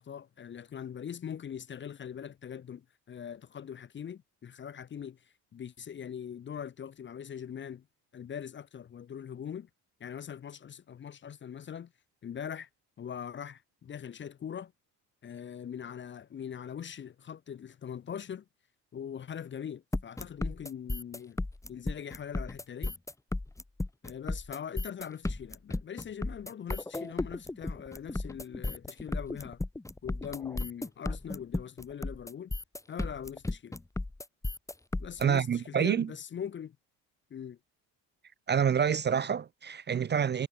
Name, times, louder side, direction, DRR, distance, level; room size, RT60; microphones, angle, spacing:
voice 1, 0.0-5.2 5.5-7.8 8.1-9.7 10.0-11.9 12.2-12.7 13.0-14.7 15.2-18.4 18.9-21.4 21.7-22.9 24.0-29.6 30.0-32.5 32.9-33.8 35.0-36.8 37.3-37.6, left 8 dB, 30° left, 0.6 m, -41 dB
sound 1, 19.9-35.2, left 2 dB, 10° left, 0.9 m, -34 dB
voice 2, 35.2-36.1 38.5-40.5, right 7 dB, 30° right, 0.5 m, -27 dB
supercardioid pair, 80°, 36 cm